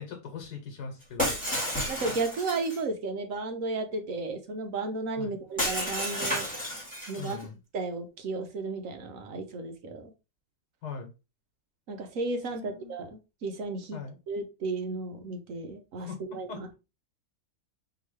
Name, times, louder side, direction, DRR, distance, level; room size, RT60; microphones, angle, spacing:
voice 1, 0.0-1.4 5.2-5.4 7.2-7.5 10.8-11.1 12.6-12.9 13.9-14.2 16.0-16.6, left 5 dB, 80° left, 1.5 m, -40 dB
Shatter, 1.2-2.8 5.6-7.4, equal, 5° left, 1.8 m, -31 dB
voice 2, 1.9-6.5 7.1-7.4 7.7-10.1 11.9-14.0 14.3-16.7, right 3 dB, 60° right, 1.1 m, -34 dB
4.6 x 2.9 x 3.2 m
omnidirectional pair, 1.7 m